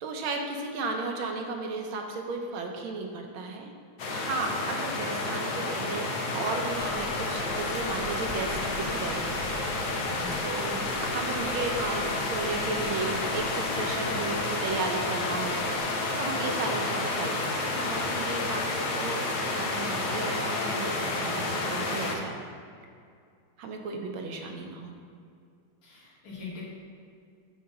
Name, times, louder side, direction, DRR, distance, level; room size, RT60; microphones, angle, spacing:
voice 1, 0.0-3.7 4.0-6.1 6.3-9.3 10.4-15.6 16.2-22.4 23.6-24.9, right 3 dB, 80° right, 3 dB, 1.5 m, -34 dB
sound 1, 4.0-22.2, left 2 dB, 60° left, 1.2 m, -30 dB
sound 2, 6.7-15.8, right 1 dB, 10° left, 1.2 m, -44 dB
voice 2, 10.1-10.4 25.8-26.6, left 4 dB, 80° left, -6 dB, 2.1 m, -41 dB
sound 3, 11.0-19.6, left 3 dB, 40° left, 1.6 m, -42 dB
7.4 x 4.1 x 5.8 m, 2.3 s
omnidirectional pair, 2.3 m